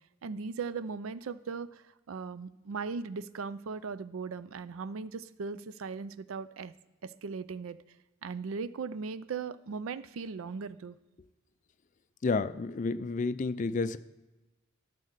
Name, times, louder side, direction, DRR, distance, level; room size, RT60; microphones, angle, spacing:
voice 1, 0.2-6.7 7.0-7.8 8.2-11.0, right 5 dB, 80° right, 15 dB, 0.4 m, -38 dB
voice 2, 12.2-14.0, left 3 dB, 35° left, 13 dB, 0.4 m, -30 dB
12.5 x 4.2 x 6.6 m, 1.1 s
head